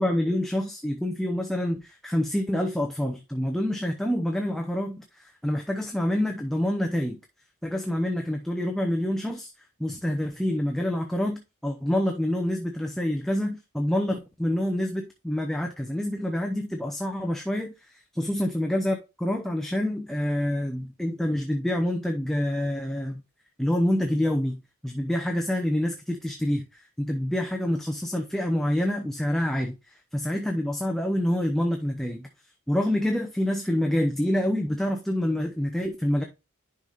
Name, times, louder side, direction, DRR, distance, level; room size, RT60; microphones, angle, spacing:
voice 1, 0.0-7.2 7.6-9.5 9.8-23.2 23.6-32.3 32.7-36.2, left 1 dB, ahead, 0.7 m, -27 dB
10.5 x 5.4 x 2.4 m
head